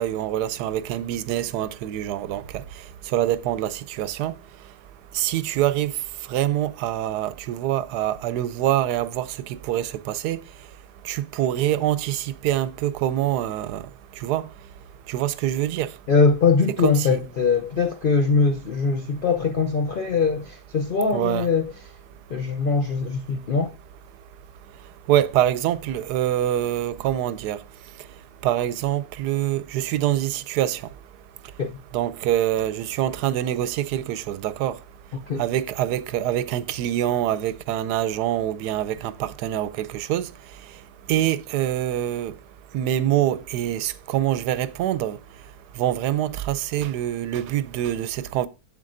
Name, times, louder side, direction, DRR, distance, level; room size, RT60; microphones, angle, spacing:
voice 1, 0.0-2.6 3.1-4.3 5.1-5.9 6.3-10.4 11.0-13.9 14.2-14.4 15.1-15.9 16.8-17.2 21.1-21.5 25.1-27.6 28.4-30.8 31.9-34.8 35.4-40.3 41.1-42.3 42.7-45.2 45.8-48.5, right 12 dB, 85° right, 1.1 m, -25 dB
voice 2, 16.1-21.6 22.3-23.7 31.6-31.8 35.3-35.4, left 4 dB, 60° left, 0.5 m, -22 dB
7.7 x 7.4 x 2.5 m
omnidirectional pair, 1.7 m